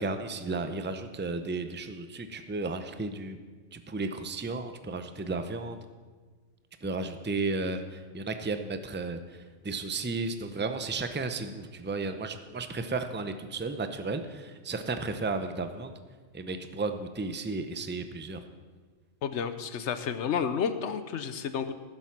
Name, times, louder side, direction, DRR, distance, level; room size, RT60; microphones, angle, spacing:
voice 1, 0.0-3.4 3.7-5.8 6.8-15.9 16.3-18.4, right 3 dB, 20° right, 8 dB, 0.3 m, -34 dB
voice 2, 19.2-21.8, left 7 dB, 65° left, 11 dB, 1.0 m, -31 dB
15.0 x 7.6 x 5.9 m, 1.4 s
omnidirectional pair, 1.4 m